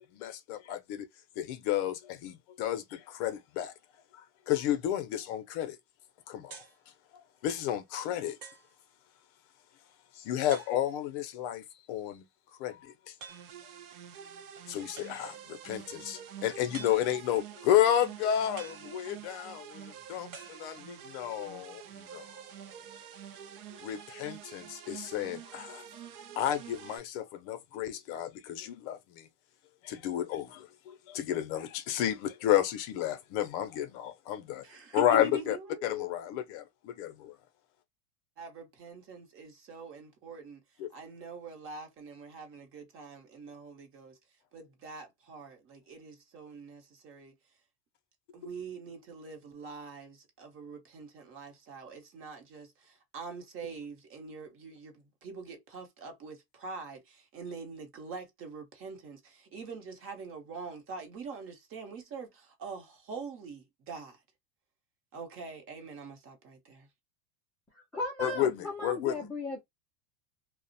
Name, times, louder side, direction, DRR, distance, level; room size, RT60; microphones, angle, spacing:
voice 1, 0.1-1.1 1.4-3.7 4.1-5.8 6.3-6.6 7.1-8.4 10.1-12.2 12.6-13.1 14.7-22.3 23.7-25.9 26.4-29.3 29.8-34.6 34.9-35.6 35.8-37.3 40.8-40.9 68.2-69.3, left 11 dB, 55° left, 0.5 m, -32 dB
sound 1, 6.5-6.8 7.6-7.7 8.4-8.8 10.5-11.1 13.2-13.6 15.0-15.5 16.7-17.4 18.6-19.4 20.3-21.2, right 5 dB, 50° right, 1.0 m, -49 dB
sound 2, 13.3-27.0, right 9 dB, 80° right, 0.7 m, -48 dB
voice 2, 34.6-36.0 38.4-40.6 40.9-44.2 44.5-47.4 48.3-64.2 65.1-66.9, right 5 dB, 30° right, 0.7 m, -45 dB
voice 3, 67.7-69.6, left 2 dB, 5° left, 0.3 m, -36 dB
2.3 x 2.1 x 2.5 m
supercardioid pair, 135°, 43 cm